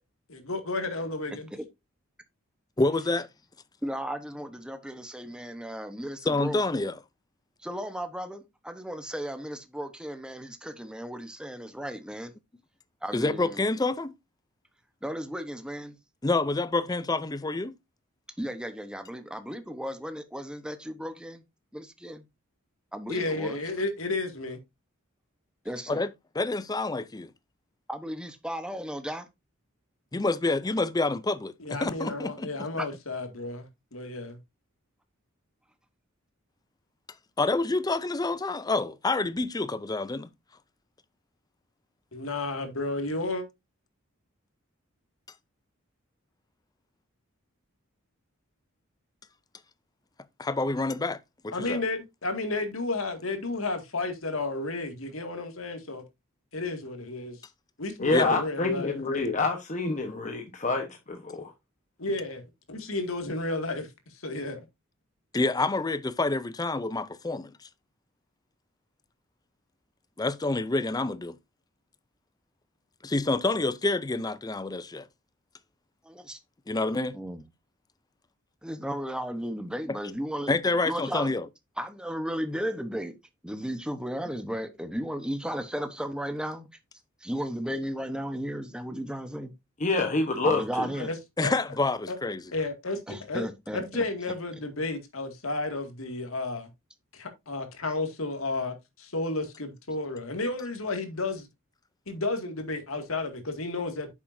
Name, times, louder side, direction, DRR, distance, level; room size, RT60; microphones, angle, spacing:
voice 1, 0.3-1.5 23.1-24.6 31.6-34.4 42.1-43.4 51.5-56.0 56.5-57.4 57.8-59.0 62.0-62.4 62.7-63.9 64.2-64.6 91.0-91.2 91.4-91.5 92.1-92.2 92.5-93.5 93.7-96.7 97.1-101.5 102.1-104.1, left 2 dB, 80° left, 2.2 m, -32 dB
voice 2, 2.8-3.3 6.3-7.0 13.1-14.1 16.2-17.7 25.9-26.1 26.4-27.3 30.1-32.7 37.4-40.3 50.4-51.2 51.4-51.8 58.1-58.4 65.3-67.5 70.2-71.4 73.0-75.1 76.7-77.2 79.9-80.0 80.5-81.5 91.4-92.4, left 2 dB, 20° left, 0.5 m, -27 dB
voice 3, 3.8-6.6 7.6-12.4 13.0-13.6 15.0-16.0 18.4-21.4 21.7-22.2 22.9-23.6 25.6-26.1 27.9-29.3 32.8-32.9 76.0-76.4 77.1-77.4 78.6-80.5 80.8-81.3 81.8-83.1 83.4-86.7 87.2-89.5 90.4-91.1 93.1-94.0, equal, 5° right, 1.0 m, -35 dB
voice 4, 58.0-61.5 89.8-90.9, left 3 dB, 35° left, 1.1 m, -27 dB
9.6 x 7.2 x 2.7 m
head